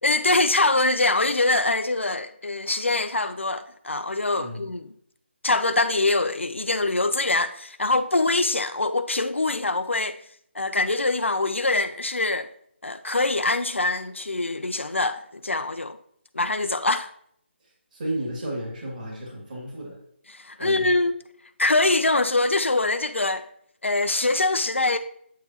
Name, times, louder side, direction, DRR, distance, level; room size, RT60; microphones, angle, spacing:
voice 1, 0.0-4.8 5.4-10.2 10.5-12.5 12.8-16.0 16.3-17.1 20.3-21.2 21.6-23.4 23.8-25.0, left 2 dB, 80° left, 0.4 m, -24 dB
voice 2, 4.4-4.7 17.6-20.0 20.6-20.9, right 1 dB, 45° right, 2.3 m, -33 dB
8.2 x 6.0 x 2.9 m
figure-of-eight pair, 150°, 7 cm